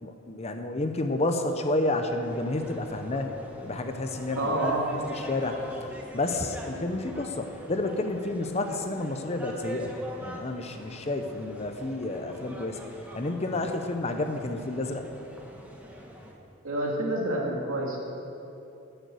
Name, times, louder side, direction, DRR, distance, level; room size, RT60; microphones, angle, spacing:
voice 1, 0.0-3.3 3.6-4.5 5.1-5.6 6.1-9.9 10.2-12.8 13.1-15.0, left 2 dB, 30° left, 6 dB, 0.7 m, -30 dB
sound 1, 2.2-16.3, equal, 5° right, 1.1 m, -43 dB
voice 2, 4.4-4.9 16.6-18.0, right 1 dB, 90° right, -2 dB, 2.4 m, -28 dB
11.5 x 6.7 x 7.8 m, 2.8 s
head